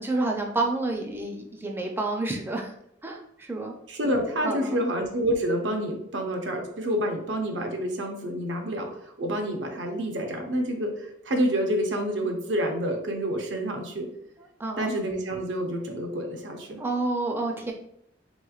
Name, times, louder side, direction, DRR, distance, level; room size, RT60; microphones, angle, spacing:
voice 1, 0.0-2.7 3.0-3.7 4.4-4.8 14.6-14.9 16.8-17.7, right 2 dB, 10° right, 1 dB, 0.4 m, -29 dB
voice 2, 3.9-14.1 14.8-16.8, equal, 75° right, 3 dB, 0.6 m, -28 dB
3.3 x 3.0 x 2.3 m, 0.73 s
head